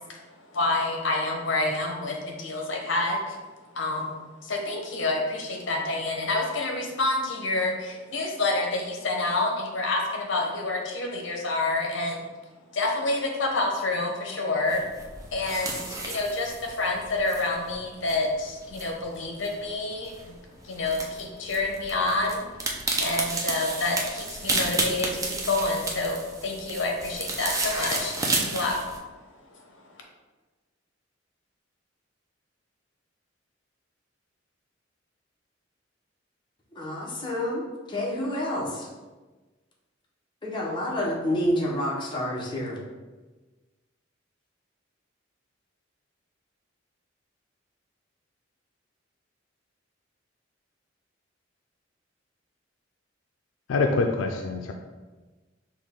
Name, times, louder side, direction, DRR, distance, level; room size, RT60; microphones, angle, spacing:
voice 1, 0.5-3.4 3.7-4.1 4.4-12.2 12.7-14.8 15.3-20.4 20.6-22.4 23.0-28.8 29.5-29.9, left 2 dB, 70° left, 1 dB, 0.8 m, -28 dB
sound 1, 14.7-29.0, right 2 dB, 15° right, 0.5 m, -32 dB
voice 2, 36.8-38.9 40.4-42.8, left 1 dB, 25° left, -4 dB, 0.9 m, -28 dB
voice 3, 53.7-54.7, left 3 dB, 85° left, 3 dB, 0.4 m, -25 dB
6.2 x 2.3 x 3.5 m, 1.3 s
head